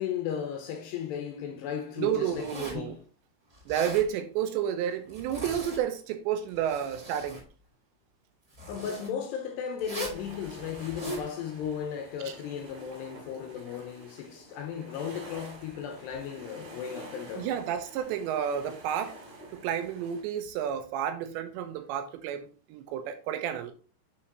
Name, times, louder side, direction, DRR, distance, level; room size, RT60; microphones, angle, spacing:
voice 1, 0.0-3.0 8.7-17.5, left 8 dB, 80° left, 2.7 m, -35 dB
voice 2, 2.0-2.9 3.7-7.4 17.3-19.1 19.5-23.7, right 9 dB, 80° right, 2.9 m, -31 dB
Zipper (clothing), 2.3-2.9 3.5-4.1 5.1-5.8 6.4-7.4 8.5-9.1 9.8-10.2 10.7-11.3, equal, 20° right, 2.7 m, -39 dB
sound 1, 10.0-20.2, right 1 dB, 40° right, 4.1 m, -48 dB
7.1 x 6.2 x 2.9 m
omnidirectional pair, 5.3 m